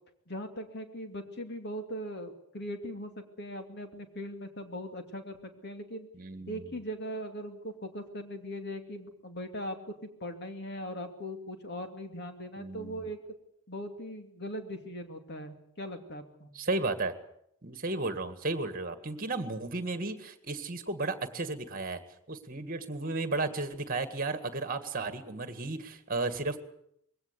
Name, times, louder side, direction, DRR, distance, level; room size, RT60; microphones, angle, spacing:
voice 1, 0.3-3.1 3.4-6.1 6.5-9.8 10.0-13.2 13.7-16.5, equal, 50° left, 6 dB, 2.6 m, -40 dB
voice 2, 6.1-6.7 12.6-13.1 16.5-17.1 17.6-22.0 22.3-26.6, right 3 dB, 40° right, 10 dB, 1.9 m, -34 dB
21.5 x 17.0 x 8.4 m, 0.75 s
head